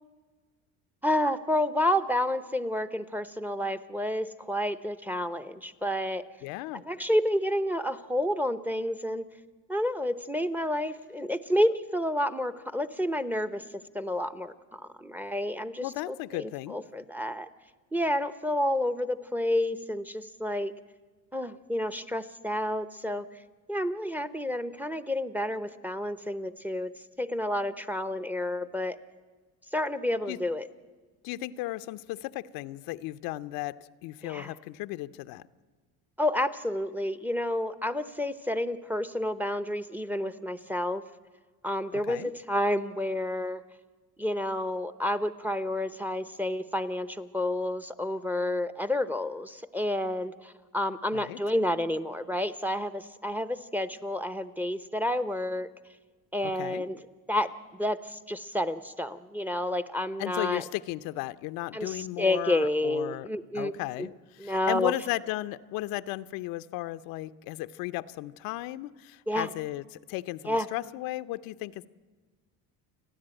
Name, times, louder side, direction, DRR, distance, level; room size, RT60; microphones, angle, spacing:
voice 1, 1.0-6.2 6.7-9.2 9.7-13.6 13.9-17.5 17.9-20.7 21.3-23.3 23.7-29.0 29.7-30.7 34.2-34.5 36.2-41.0 41.6-43.6 44.2-55.7 56.3-57.0 57.3-60.6 61.7-63.7 64.0-64.1 64.4-64.9 69.3-69.5 70.5-70.7, left 1 dB, 5° right, 13 dB, 0.7 m, -30 dB
voice 2, 6.4-6.8 15.8-16.8 30.3-30.4 31.2-33.8 34.0-35.4 41.9-42.3 51.1-51.4 56.4-56.8 60.2-63.3 63.5-71.9, left 17 dB, 80° left, 13 dB, 0.7 m, -35 dB
29.0 x 10.5 x 8.9 m, 1.4 s
cardioid pair, 115°, 34 cm